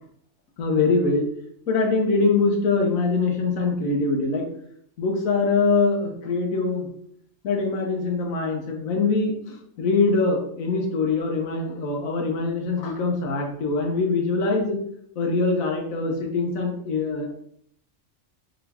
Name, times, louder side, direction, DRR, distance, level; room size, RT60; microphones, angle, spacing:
voice 1, 0.6-1.3 1.7-4.5 5.0-6.9 7.4-14.8 15.2-17.3, left 3 dB, 85° left, 1 dB, 1.3 m, -23 dB
3.8 x 3.6 x 3.4 m, 0.66 s
omnidirectional pair, 1.4 m